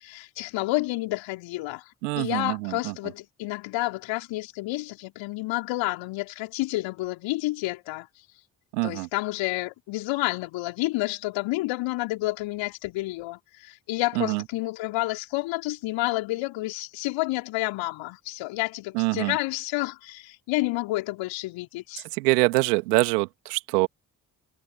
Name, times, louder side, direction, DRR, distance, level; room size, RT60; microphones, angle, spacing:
voice 1, 0.0-1.8 2.2-8.1 8.8-22.0, left 20 dB, 65° left, 3.8 m, -30 dB
voice 2, 2.0-2.9 8.7-9.1 14.2-14.4 18.9-19.4 22.2-23.9, right 25 dB, 75° right, 2.3 m, -24 dB
figure-of-eight pair, 40°, 48 cm